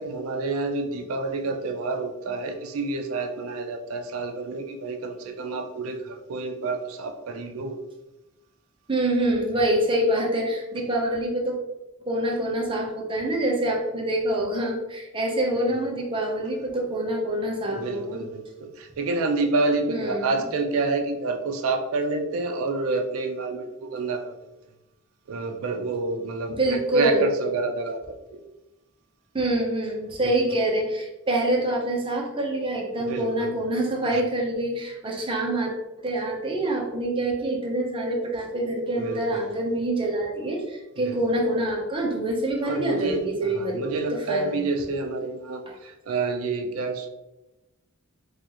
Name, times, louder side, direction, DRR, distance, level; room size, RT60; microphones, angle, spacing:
voice 1, 0.0-7.8 15.7-15.8 17.7-24.3 25.3-28.0 28.3-28.4 30.2-30.3 33.0-33.5 34.1-34.2 39.0-39.4 41.0-41.2 42.6-47.1, right 3 dB, 80° right, 5 dB, 0.4 m, -28 dB
voice 2, 8.9-11.6 12.0-18.2 19.9-20.4 26.6-27.3 29.3-35.7 36.0-44.6 45.7-45.8, right 1 dB, 25° right, 0 dB, 0.7 m, -26 dB
4.4 x 2.4 x 2.9 m, 0.99 s
head